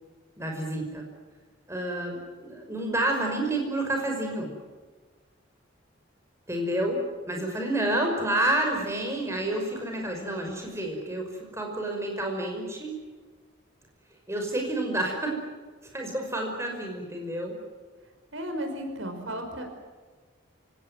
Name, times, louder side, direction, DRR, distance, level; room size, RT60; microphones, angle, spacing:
voice 1, 0.4-1.1 1.7-4.5 6.5-13.0 14.3-15.4 15.8-17.6, right 1 dB, 15° right, 2 dB, 5.7 m, -29 dB
voice 2, 18.3-19.6, equal, 80° right, 5 dB, 5.4 m, -34 dB
29.0 x 17.5 x 9.5 m, 1.4 s
head